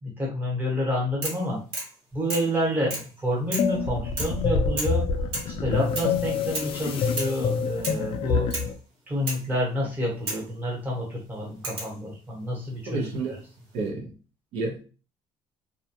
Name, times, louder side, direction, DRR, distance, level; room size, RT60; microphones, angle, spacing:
voice 1, 0.0-1.6 2.1-5.0 5.5-8.5 9.1-13.1, equal, 15° right, 1.0 m, -29 dB
sound 1, 1.2-1.5 1.7-2.0 2.3-2.5 2.9-3.1 3.5-3.8 4.2-4.4 4.8-5.0 5.3-5.6 6.0-6.1 6.5-6.8 7.2-7.4 7.8-8.1 8.5-8.7 9.3-9.5 10.3-10.5 11.6-12.0 13.1-13.6, right 2 dB, 60° right, 1.1 m, -33 dB
sound 2, 3.6-8.7, left 5 dB, 55° left, 0.4 m, -26 dB
voice 2, 12.9-13.4 13.7-14.1 14.5-14.9, right 3 dB, 80° right, 0.6 m, -30 dB
2.2 x 2.1 x 2.8 m
cardioid pair, 140°, 11 cm